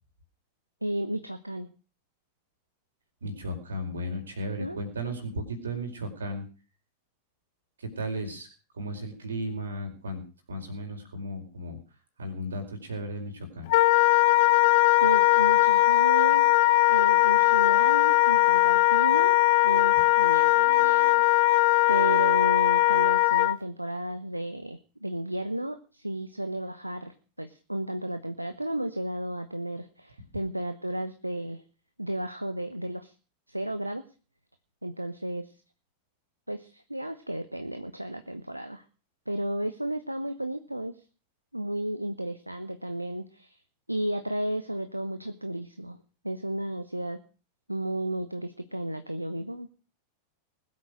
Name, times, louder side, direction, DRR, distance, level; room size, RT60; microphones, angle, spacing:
voice 1, 0.8-1.7 4.6-4.8 15.0-31.6 32.0-33.1 33.5-34.0 34.8-35.5 36.5-38.8 39.3-41.0 41.5-43.6 43.9-46.0 46.2-47.2 47.7-49.7, right 1 dB, 85° right, 9 dB, 1.0 m, -33 dB
voice 2, 3.2-6.4 7.8-8.5 8.7-11.8 12.2-13.7, equal, 70° right, 5 dB, 5.0 m, -35 dB
Wind instrument woodwind instrument, 13.7-23.6, left 19 dB, 50° left, 0.6 m, -20 dB
20.5 x 8.6 x 6.4 m, 0.37 s
figure-of-eight pair, 90°, 0 cm